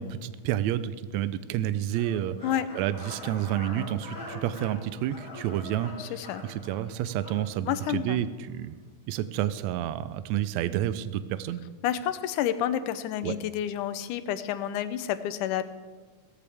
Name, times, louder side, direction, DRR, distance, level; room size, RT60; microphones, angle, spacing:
voice 1, 0.0-2.4 2.7-8.8 9.1-11.6 13.2-13.4, right 11 dB, 80° right, 14 dB, 1.7 m, -30 dB
sound 1, 1.9-8.0, left 1 dB, 30° left, 5.6 m, -44 dB
voice 2, 6.0-6.4 7.7-8.2 11.8-15.6, left 11 dB, 85° left, 12 dB, 2.2 m, -29 dB
16.5 x 14.0 x 3.5 m, 1.4 s
omnidirectional pair, 3.5 m